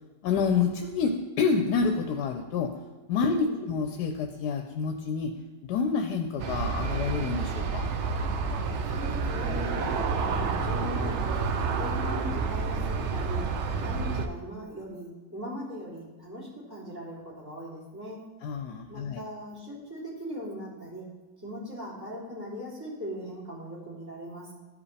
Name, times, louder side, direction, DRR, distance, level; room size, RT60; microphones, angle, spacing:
voice 1, 0.2-1.1 1.4-2.7 3.1-5.3 5.6-7.8 18.4-19.2, left 5 dB, 80° left, 4 dB, 1.2 m, -28 dB
voice 2, 3.2-3.7 8.8-13.4 13.8-18.2 18.9-21.1 21.4-24.5, equal, 15° right, -8 dB, 3.0 m, -39 dB
Aircraft, 6.4-14.3, right 4 dB, 65° right, 0.7 m, -29 dB
14.0 x 5.0 x 3.3 m, 1.2 s
omnidirectional pair, 1.8 m